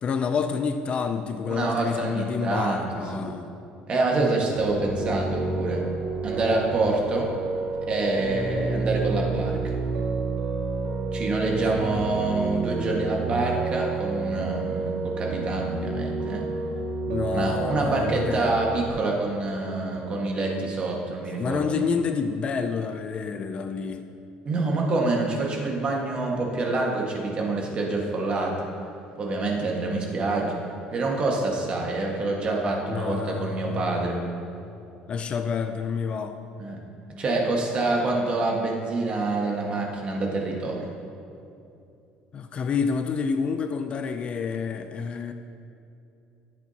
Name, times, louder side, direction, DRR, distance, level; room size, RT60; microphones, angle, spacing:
voice 1, 0.0-3.5 11.6-11.8 17.1-18.6 21.4-24.0 32.9-34.1 35.1-36.4 42.3-45.3, left 6 dB, 35° left, 8 dB, 0.5 m, -28 dB
voice 2, 1.4-2.9 3.1-3.3 3.9-5.8 6.2-7.3 7.9-9.7 11.1-16.4 17.3-21.9 24.4-28.6 29.2-30.5 30.9-34.2 36.6-36.8 37.2-40.9, right 2 dB, 35° right, -1 dB, 1.7 m, -26 dB
Piano, 4.6-18.9, right 3 dB, 75° right, 2.0 m, -30 dB
14.5 x 8.4 x 2.9 m, 2.7 s
cardioid pair, 125°, 3 cm